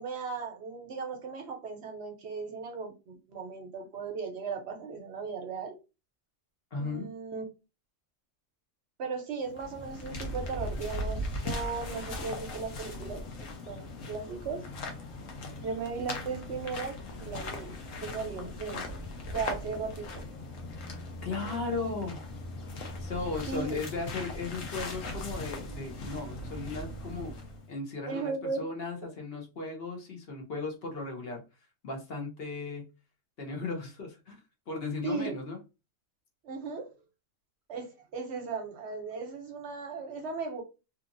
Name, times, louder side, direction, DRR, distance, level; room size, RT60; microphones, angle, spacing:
voice 1, 0.0-5.7 6.7-7.5 9.0-13.2 13.7-14.6 15.6-17.7 18.0-18.9 19.3-20.3 21.4-21.9 23.5-23.8 28.1-28.7 35.0-35.3 36.4-36.9 37.7-40.6, right 5 dB, 65° right, 3 dB, 0.8 m, -37 dB
voice 2, 6.7-7.1 20.9-22.2 23.0-27.3 27.7-31.4 31.8-32.9 33.4-34.4 34.7-35.6, left 3 dB, 55° left, 1 dB, 0.9 m, -36 dB
sound 1, 9.4-27.7, left 2 dB, 80° left, 1.1 m, -39 dB
2.8 x 2.4 x 2.5 m, 0.28 s
omnidirectional pair, 1.3 m